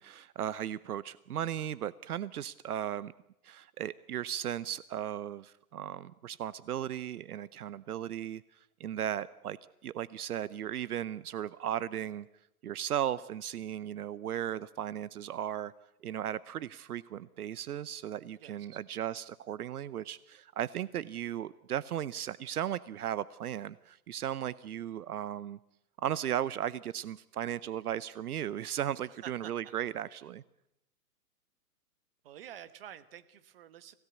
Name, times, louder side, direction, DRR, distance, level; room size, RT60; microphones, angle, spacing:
voice 1, 0.0-3.1 3.4-8.4 8.8-9.6 9.8-12.3 12.6-15.7 16.0-25.6 26.0-30.4, right 10 dB, 70° right, 19 dB, 0.8 m, -36 dB
voice 2, 18.4-18.8 29.1-29.5 32.2-34.0, right 10 dB, 40° right, 14 dB, 1.2 m, -49 dB
26.5 x 17.0 x 8.1 m, 0.84 s
hypercardioid pair, 165°, 46 cm